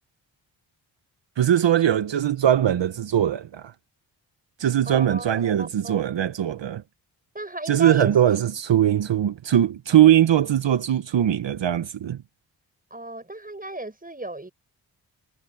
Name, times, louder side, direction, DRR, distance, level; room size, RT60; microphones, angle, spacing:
voice 1, 1.4-3.7 4.6-6.8 7.7-12.2, right 11 dB, 65° right, 1.3 m, -20 dB
voice 2, 4.9-6.2 7.3-8.4 12.9-14.5, right 2 dB, 15° right, 6.4 m, -35 dB
supercardioid pair, 45°, 47 cm